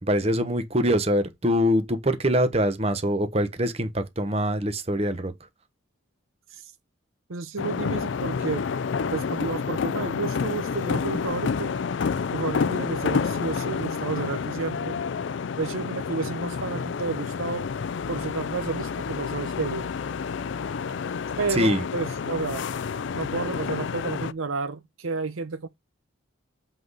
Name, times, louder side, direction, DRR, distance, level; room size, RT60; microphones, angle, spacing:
voice 1, 0.0-5.3 21.5-21.8, equal, 30° right, 1.1 m, -24 dB
voice 2, 7.3-8.6 9.1-11.7 12.3-15.0 15.6-17.7 18.1-19.9 21.4-22.7 23.1-25.7, right 4 dB, 85° right, 0.8 m, -31 dB
sound 1, 7.6-24.3, left 5 dB, 60° left, 0.4 m, -29 dB
7.7 x 4.0 x 4.8 m
head